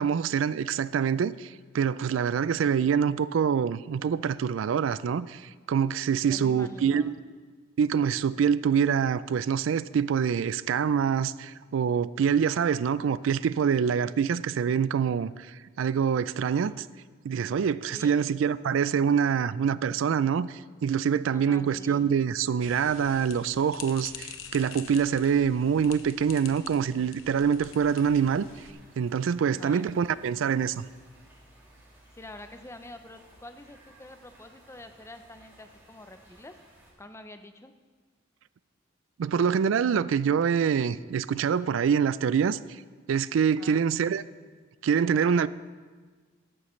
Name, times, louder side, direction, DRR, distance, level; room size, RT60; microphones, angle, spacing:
voice 1, 0.0-7.1 7.8-16.9 17.2-28.5 29.0-30.8 39.2-42.8 43.1-44.2 44.8-45.5, right 7 dB, 70° right, 0.3 m, -25 dB
voice 2, 6.3-7.2 17.9-18.2 21.3-22.1 29.4-29.9 32.1-36.5 37.0-37.7 43.4-43.8, left 1 dB, 15° left, 0.5 m, -46 dB
sound 1, 22.6-28.7, left 7 dB, 75° left, 0.9 m, -46 dB
sound 2, 27.6-36.9, right 1 dB, 15° right, 2.7 m, -57 dB
13.5 x 11.5 x 3.2 m
head